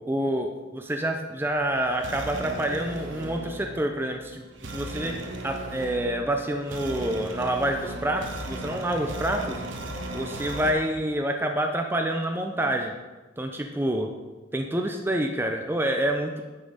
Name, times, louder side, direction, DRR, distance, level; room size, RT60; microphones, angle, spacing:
voice 1, 0.1-9.6 10.1-12.9 13.4-14.1 14.5-16.4, right 1 dB, 10° right, 3 dB, 0.6 m, -27 dB
sound 1, 1.4-10.7, right 1 dB, 80° right, 1.3 m, -37 dB
10.5 x 5.6 x 5.1 m, 1.2 s
head